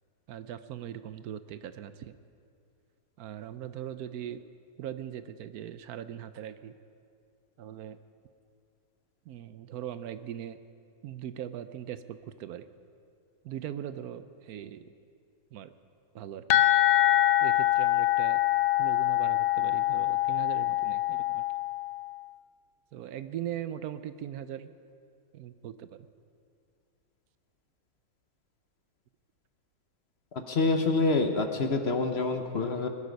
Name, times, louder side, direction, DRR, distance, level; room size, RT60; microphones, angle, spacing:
voice 1, 0.3-2.2 3.2-4.4 4.8-6.7 7.6-8.0 9.3-10.6 11.0-12.6 13.4-14.9 15.5-15.7 16.1-16.6 17.4-18.4 18.8-21.5 22.9-24.7 25.3-26.1, right 10 dB, 75° right, 12 dB, 1.1 m, -40 dB
sound 1, 16.5-22.1, left 15 dB, 70° left, 1.1 m, -25 dB
voice 2, 30.3-32.9, left 3 dB, 50° left, 6 dB, 1.1 m, -27 dB
21.0 x 12.5 x 5.3 m, 2.3 s
omnidirectional pair, 1.6 m